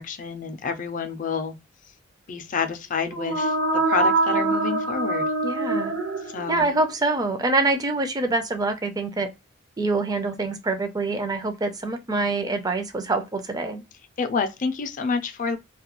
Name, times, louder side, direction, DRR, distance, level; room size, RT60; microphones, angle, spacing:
voice 1, 0.0-1.6 2.3-3.5 3.9-5.3 6.3-6.7 14.2-15.6, left 5 dB, 40° left, 0.4 m, -28 dB
sound 1, 3.0-6.8, right 2 dB, 65° right, 0.8 m, -24 dB
voice 2, 5.4-6.0 6.5-9.3 9.8-13.8, right 3 dB, 20° right, 0.4 m, -25 dB
2.3 x 2.2 x 2.9 m
head